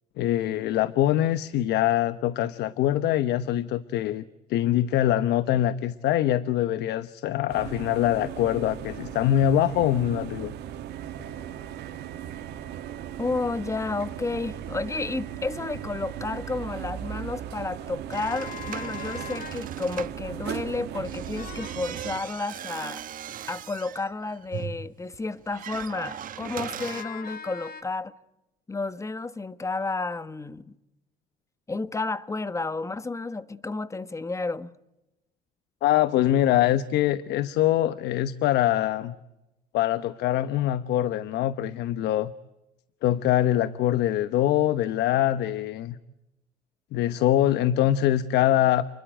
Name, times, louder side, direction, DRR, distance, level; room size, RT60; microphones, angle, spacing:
voice 1, 0.2-4.2 4.5-10.5 35.8-39.1 39.7-42.3 43.0-46.0 46.9-48.8, left 12 dB, 80° left, 1.0 m, -23 dB
sound 1, 7.5-22.2, right 10 dB, 80° right, 2.6 m, -37 dB
voice 2, 13.2-23.0 23.5-28.1 28.7-30.7 31.7-34.7, left 3 dB, 15° left, 1.3 m, -31 dB
sound 2, 18.1-19.7 21.3-21.9 26.8-27.8, left 7 dB, 60° left, 2.3 m, -40 dB
sound 3, 18.1-20.2 20.9-27.0, right 10 dB, 55° right, 1.4 m, -39 dB
29.5 x 21.5 x 9.1 m
cardioid pair, 110°, 17 cm